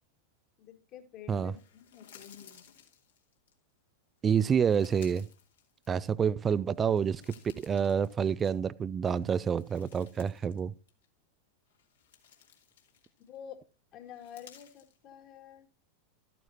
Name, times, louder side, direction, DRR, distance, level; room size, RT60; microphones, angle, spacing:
voice 1, 0.6-2.7 13.2-13.6 13.9-15.7, left 9 dB, 35° left, 2.1 m, -49 dB
sound 1, 1.5-3.5 4.2-6.3 6.7-8.8 9.2-10.6 10.9-11.1 11.7-13.4 14.1-15.0, left 8 dB, 60° left, 2.4 m, -58 dB
voice 2, 4.2-5.3 5.9-7.2 7.6-10.7, right 7 dB, 20° right, 0.4 m, -28 dB
14.0 x 9.4 x 2.8 m
figure-of-eight pair, 90°, 0 cm